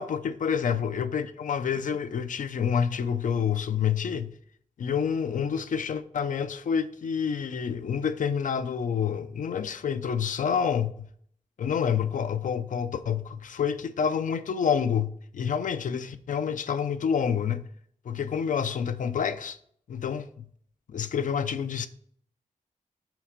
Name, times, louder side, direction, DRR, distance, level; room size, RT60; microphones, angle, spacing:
voice 1, 0.0-4.3 4.8-11.1 11.6-17.6 18.1-19.6 19.9-20.3 20.9-21.9, left 7 dB, 70° left, 0.5 m, -28 dB
6.1 x 4.3 x 5.0 m
wide cardioid pair, 110°, 14 cm